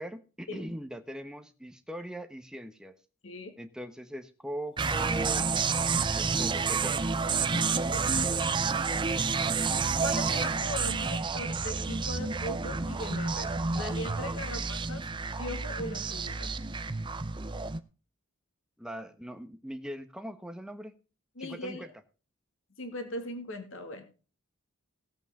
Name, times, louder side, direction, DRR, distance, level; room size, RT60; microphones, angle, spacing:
voice 1, 0.0-2.9 3.6-5.4 5.8-7.0 14.5-14.7 18.8-20.9 21.4-21.9, right 1 dB, 5° right, 8 dB, 1.0 m, -41 dB
sound 1, 4.8-17.8, right 4 dB, 20° right, 0.6 m, -29 dB
voice 2, 7.5-8.1 10.0-15.1 15.4-16.6 21.4-21.9 22.8-24.0, left 1 dB, 65° left, 6 dB, 2.1 m, -39 dB
18.0 x 8.1 x 3.7 m, 0.35 s
head